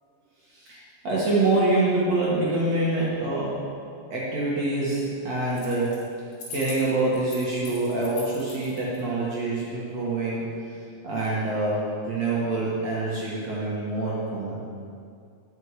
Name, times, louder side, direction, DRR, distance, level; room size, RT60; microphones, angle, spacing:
voice 1, 0.5-3.6 4.1-6.1 6.5-10.5 11.0-14.6, right 2 dB, 55° right, -6 dB, 2.1 m, -26 dB
sound 1, 5.5-6.0 6.3-9.0, left 4 dB, 80° left, 4.0 m, -41 dB
8.0 x 6.6 x 8.2 m, 2.4 s
omnidirectional pair, 4.8 m